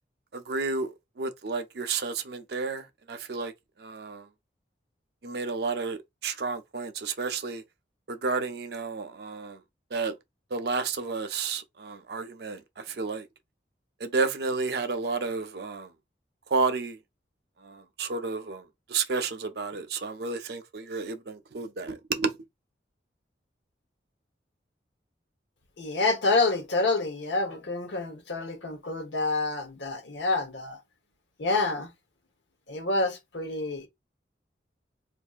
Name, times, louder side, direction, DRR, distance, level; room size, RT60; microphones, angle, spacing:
voice 1, 0.3-3.5 3.8-4.3 5.2-7.6 8.1-9.6 9.9-10.1 10.5-13.3 14.0-15.9 16.5-17.0 17.6-18.6 18.9-22.3, right 4 dB, 60° right, 0.5 m, -31 dB
voice 2, 25.8-30.8 31.4-31.9 32.7-33.9, left 3 dB, 80° left, 1.0 m, -28 dB
4.3 x 2.6 x 2.4 m
head